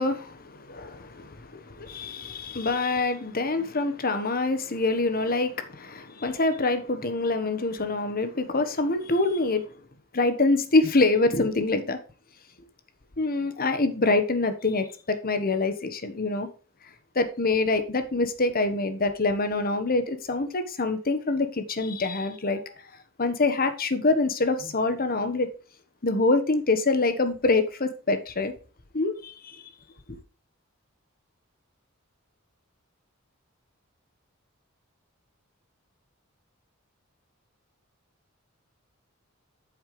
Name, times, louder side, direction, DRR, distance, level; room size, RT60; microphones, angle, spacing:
voice 1, 0.0-9.7 10.1-12.0 13.2-16.5 17.1-22.6 23.2-25.5 26.0-28.5 28.9-29.6, left 3 dB, 45° left, 1.2 m, -25 dB
8.9 x 7.1 x 3.2 m
head